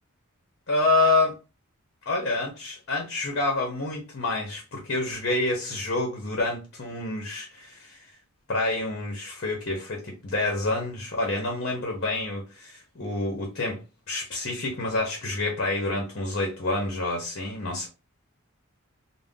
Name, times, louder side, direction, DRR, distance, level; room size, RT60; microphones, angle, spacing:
voice 1, 0.7-1.4 2.1-8.0 8.5-13.8 14.1-17.9, left 2 dB, 50° left, 0.7 m, -28 dB
2.5 x 2.0 x 3.5 m
head